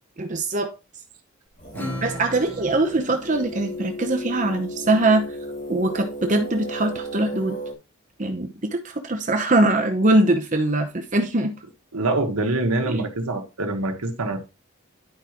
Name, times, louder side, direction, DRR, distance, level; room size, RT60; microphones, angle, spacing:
voice 1, 0.2-0.7 2.0-5.3 5.7-7.6 8.2-11.5 12.9-13.0, right 2 dB, 35° right, 0.8 m, -22 dB
sound 1, 1.6-7.7, equal, 35° left, 2.1 m, -35 dB
Acoustic guitar / Strum, 1.7-4.6, left 1 dB, 10° left, 1.3 m, -37 dB
voice 2, 11.9-14.4, right 2 dB, 85° right, 1.5 m, -25 dB
11.5 x 4.9 x 3.0 m
head